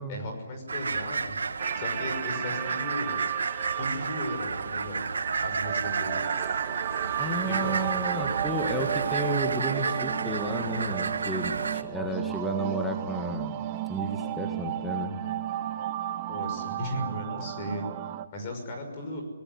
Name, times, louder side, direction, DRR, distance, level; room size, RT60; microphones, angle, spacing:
voice 1, 0.1-1.4 1.7-3.2 3.8-5.1 5.4-6.2 7.5-7.7 11.8-12.0 16.3-17.9 18.3-19.2, left 1 dB, 25° left, 3 dB, 6.1 m, -36 dB
Bandurrias (Theristicus caudatus) in Frutillar Chile, 0.7-11.8, right 4 dB, 90° right, 1.6 m, -31 dB
sound 1, 1.6-18.3, right 13 dB, 20° right, 0.9 m, -34 dB
voice 2, 7.2-15.2, right 1 dB, ahead, 2 dB, 1.7 m, -32 dB
26.5 x 19.0 x 9.8 m, 1.2 s
hypercardioid pair, 175°, 0 cm